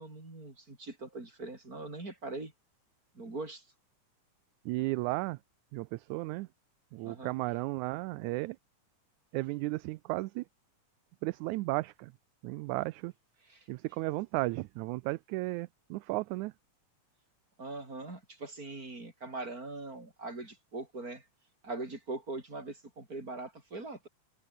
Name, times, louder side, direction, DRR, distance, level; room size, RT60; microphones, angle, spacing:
voice 1, 0.0-2.5 3.1-3.6 7.0-7.3 13.5-13.6 17.6-21.2 21.6-24.1, right 2 dB, 25° right, 5.9 m, -41 dB
voice 2, 4.7-5.4 5.7-6.5 6.9-8.6 9.3-10.4 11.2-12.1 12.4-13.1 13.7-16.5, right 21 dB, 80° right, 1.9 m, -34 dB
omnidirectional pair, 3.6 m